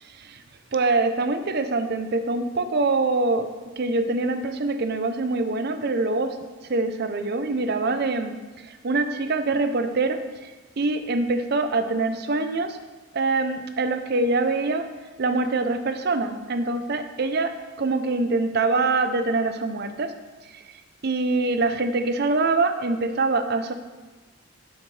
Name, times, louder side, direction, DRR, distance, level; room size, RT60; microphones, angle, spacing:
voice 1, 0.7-3.5 3.8-6.4 6.6-12.8 13.1-14.9 15.2-20.1 20.4-23.7, right 3 dB, 50° right, 9 dB, 0.6 m, -24 dB
12.0 x 7.2 x 3.3 m, 1.3 s
head